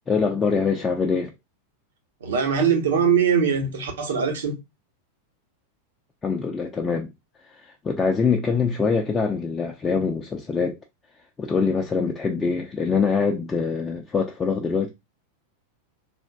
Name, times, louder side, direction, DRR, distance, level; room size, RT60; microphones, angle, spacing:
voice 1, 0.1-1.3 6.2-7.1 7.5-10.8 11.4-14.9, left 5 dB, 15° left, 0.4 m, -24 dB
voice 2, 2.2-4.5, right 7 dB, 60° right, 0.9 m, -21 dB
3.3 x 2.5 x 2.3 m
figure-of-eight pair, 90°, 0 cm